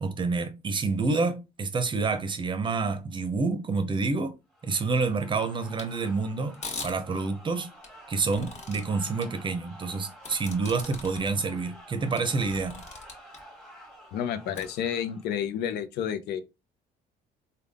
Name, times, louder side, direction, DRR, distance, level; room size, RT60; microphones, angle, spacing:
voice 1, 0.0-4.3 4.6-7.7 8.1-12.8, right 4 dB, 30° right, 0.7 m, -28 dB
sound 1, 4.5-15.5, right 1 dB, ahead, 1.2 m, -50 dB
sound 2, 5.8-5.9 6.5-6.9 7.8-8.8 9.2-9.3 10.2-11.3 11.7-11.8 12.2-13.4 14.5-14.6, left 4 dB, 45° left, 1.6 m, -39 dB
voice 2, 14.1-16.4, left 9 dB, 75° left, 0.5 m, -30 dB
3.5 x 2.3 x 3.4 m
cardioid pair, 110°, 17 cm